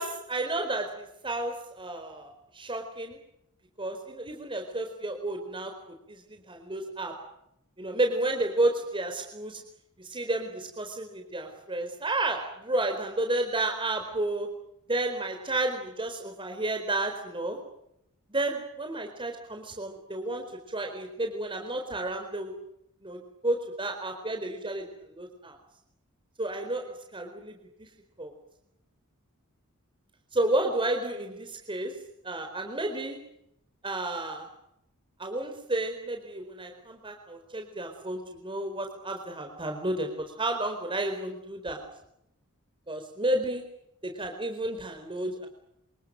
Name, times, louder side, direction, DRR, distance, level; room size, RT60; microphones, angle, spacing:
voice 1, 0.0-3.2 3.8-5.7 6.1-7.1 7.8-9.6 10.0-14.5 14.9-17.6 18.3-22.5 23.0-25.6 26.4-27.9 28.2-28.3 30.3-31.9 32.2-33.2 33.8-34.5 35.2-40.1 40.4-41.8 42.9-43.6 44.0-45.5, right 2 dB, 25° right, 4 dB, 4.4 m, -31 dB
29.0 x 27.5 x 6.7 m, 0.79 s
head